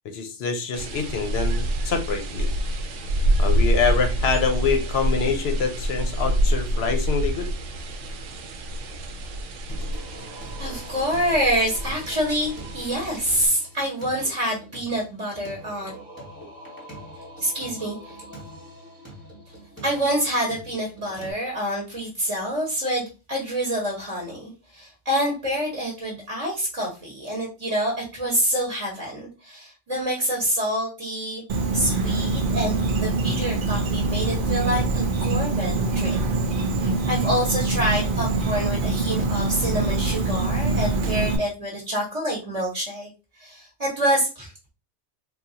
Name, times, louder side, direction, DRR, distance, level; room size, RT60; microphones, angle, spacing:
voice 1, 0.0-2.5 3.4-7.5, left 5 dB, 65° left, 6 dB, 0.8 m, -25 dB
sound 1, 0.7-13.5, equal, 80° right, 0.9 m, -26 dB
Singing, 9.7-21.3, equal, 10° left, 1.1 m, -43 dB
voice 2, 10.6-15.9 17.4-18.2 19.8-31.4 31.7-36.2 36.8-43.1 43.4-44.7, equal, 30° right, -2 dB, 0.9 m, -27 dB
Insect, 31.5-41.4, right 3 dB, 60° right, 0.6 m, -24 dB
3.5 x 2.3 x 2.7 m, 0.31 s
omnidirectional pair, 1.2 m